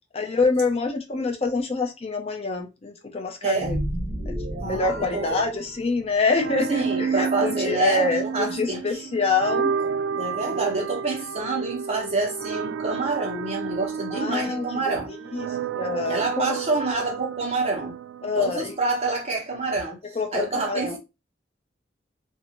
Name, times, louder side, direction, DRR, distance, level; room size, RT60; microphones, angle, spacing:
voice 1, 0.1-3.8 4.3-9.7 10.5-10.6 14.1-15.5 15.8-16.6 18.2-18.8 20.2-21.0, left 3 dB, 35° left, 0.5 m, -26 dB
voice 2, 3.4-3.8 4.6-5.4 6.7-9.1 9.8-15.1 16.1-17.9 18.4-21.0, right 3 dB, 35° right, 1.1 m, -27 dB
sound 1, 3.6-6.2, equal, 65° right, 1.1 m, -32 dB
sound 2, 6.3-19.2, right 6 dB, 90° right, 0.3 m, -31 dB
2.6 x 2.6 x 2.9 m
head